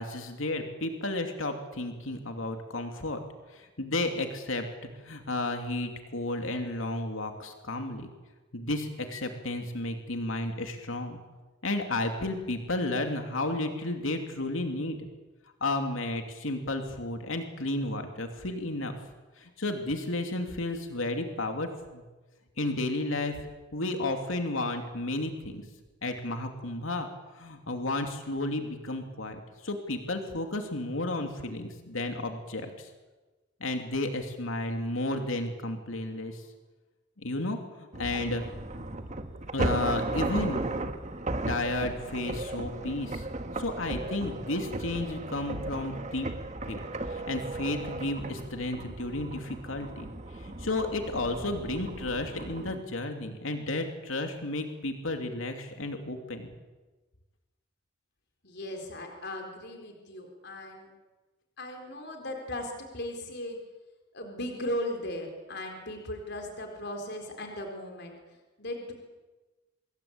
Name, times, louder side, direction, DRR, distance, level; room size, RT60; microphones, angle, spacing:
voice 1, 0.0-3.2 3.5-4.7 5.0-8.1 8.5-11.2 11.6-15.1 15.6-19.0 19.4-22.0 22.6-23.4 23.7-25.6 26.0-27.1 27.3-32.9 33.6-36.4 37.2-38.4 39.5-40.6 41.5-43.3 43.6-46.3 46.7-50.1 50.3-56.5, left 2 dB, 90° left, 5 dB, 2.8 m, -32 dB
sound 1, 37.9-52.8, right 2 dB, 35° right, 1.6 m, -35 dB
voice 2, 58.4-60.9 61.6-63.6 64.1-68.2 68.6-68.9, left 1 dB, 55° left, 3 dB, 4.1 m, -37 dB
26.5 x 21.5 x 8.7 m, 1.2 s
head